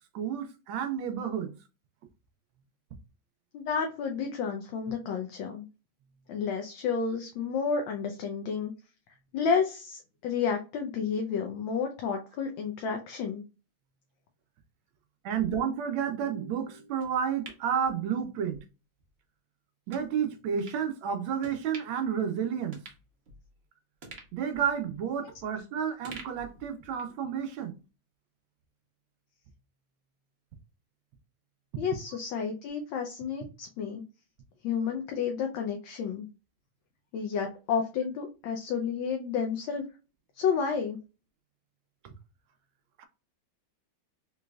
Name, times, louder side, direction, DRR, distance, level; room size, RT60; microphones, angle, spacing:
voice 1, 0.1-1.5 15.2-18.6 19.9-22.8 24.3-27.7 43.0-43.1, right 8 dB, 75° right, 1.3 m, -31 dB
voice 2, 3.5-5.6 6.3-8.7 9.3-13.4 31.8-34.0 34.6-36.3 37.1-39.8 40.4-41.0, left 6 dB, 75° left, 1.3 m, -31 dB
sound 1, 17.0-18.6 19.0-19.1 19.9-20.1 20.7-20.8 21.4-22.1 22.4-22.5 22.7-23.6 24.0-25.6 26.0-27.2 27.5-27.6, right 3 dB, 55° right, 0.7 m, -49 dB
3.8 x 3.1 x 2.2 m
omnidirectional pair, 2.3 m